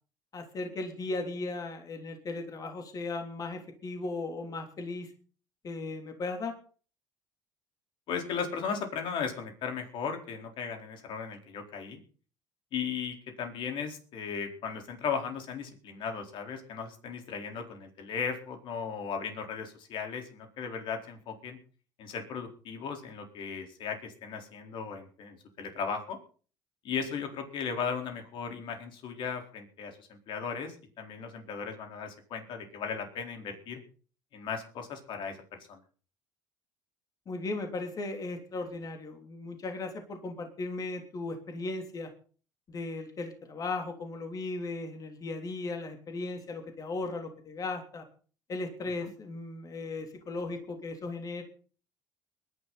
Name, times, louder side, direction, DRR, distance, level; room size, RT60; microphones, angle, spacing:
voice 1, 0.3-5.1 5.6-6.5 37.3-42.1 42.7-48.1 48.5-51.4, left 3 dB, 40° left, 5 dB, 3.4 m, -37 dB
voice 2, 8.1-12.0 12.7-21.6 22.0-26.2 26.8-30.0 30.3-33.8 34.3-35.4 35.7-35.8, left 6 dB, 60° left, 4 dB, 4.3 m, -36 dB
22.0 x 11.5 x 4.2 m, 0.40 s
supercardioid pair, 85°, 9 cm